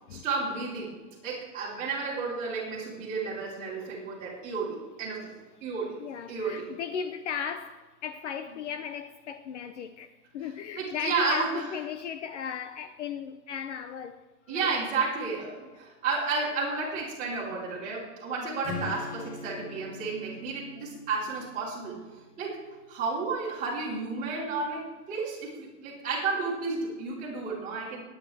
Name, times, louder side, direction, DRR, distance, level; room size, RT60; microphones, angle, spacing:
voice 1, 0.1-1.0 1.2-5.3 5.6-6.0 6.3-6.7 10.7-11.7 14.5-22.0 22.4-22.6 22.9-28.0, right 4 dB, 15° right, 3.9 m, -32 dB
voice 2, 6.0-14.7 14.9-15.1, left 7 dB, 50° left, 0.6 m, -37 dB
Strum, 18.6-22.7, left 3 dB, 70° left, 3.3 m, -42 dB
23.0 x 10.0 x 3.4 m
supercardioid pair, 175°, 47 cm